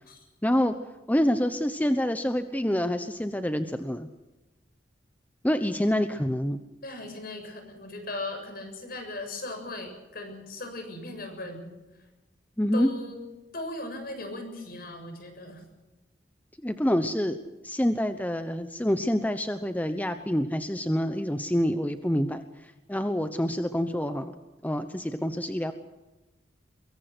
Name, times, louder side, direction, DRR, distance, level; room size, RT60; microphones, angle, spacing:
voice 1, 0.4-0.7 1.1-4.1 5.4-6.6 12.6-12.9 16.6-17.4 17.6-24.3 24.6-25.7, equal, 10° left, 8 dB, 1.0 m, -27 dB
voice 2, 6.8-11.7 12.7-13.3 13.5-15.6, left 2 dB, 55° left, 5 dB, 7.1 m, -38 dB
24.0 x 23.0 x 6.2 m, 1.1 s
head